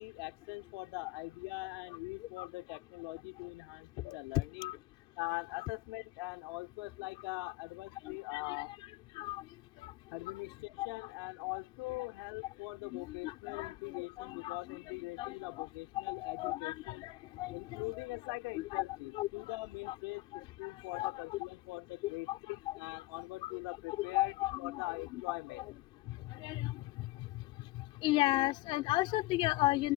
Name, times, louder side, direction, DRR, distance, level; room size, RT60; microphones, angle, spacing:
voice 1, 0.0-4.7 5.2-8.7 10.1-17.1 17.5-25.7, left 25 dB, 65° left, 3.9 m, -42 dB
voice 2, 8.3-8.6 9.2-9.4 9.8-9.9 10.3-10.4 10.8-10.9 12.9-14.6 14.9-15.7 16.1-18.1 18.5-18.8 19.1-19.5 19.8-20.0 20.9-21.4 22.3-22.4 22.7-22.8 23.4-23.6 24.1-25.2 25.5-25.6 26.4-26.7 28.0-29.9, left 18 dB, 45° left, 2.7 m, -34 dB
open air
supercardioid pair, 160°, 13 cm